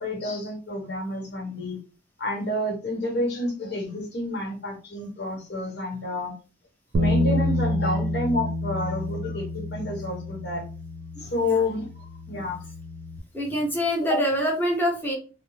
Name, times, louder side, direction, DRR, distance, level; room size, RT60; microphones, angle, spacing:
voice 1, 0.0-1.8 2.2-6.3 7.0-10.6 11.2-12.6, left 1 dB, 65° left, -1 dB, 1.1 m, -29 dB
Bass guitar, 6.9-13.2, left 1 dB, 75° right, 0.4 m, -28 dB
voice 2, 13.3-15.1, equal, 10° left, -1 dB, 0.8 m, -25 dB
2.6 x 2.0 x 3.1 m, 0.35 s
head